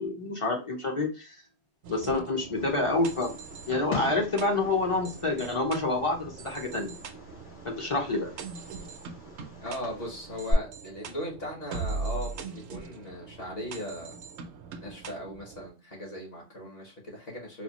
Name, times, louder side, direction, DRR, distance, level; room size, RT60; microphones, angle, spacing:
voice 1, 0.0-1.3 1.9-3.3 3.7-6.9 7.6-8.3, left 2 dB, 35° left, 1 dB, 0.6 m, -28 dB
sound 1, 1.8-15.7, right 4 dB, 70° right, 0.8 m, -41 dB
Fireworks, 2.5-10.5, left 2 dB, 85° left, 1.9 m, -41 dB
voice 2, 9.6-14.2 14.8-17.6, equal, 55° left, -2 dB, 1.4 m, -38 dB
4.1 x 2.3 x 2.9 m, 0.31 s
omnidirectional pair, 1.2 m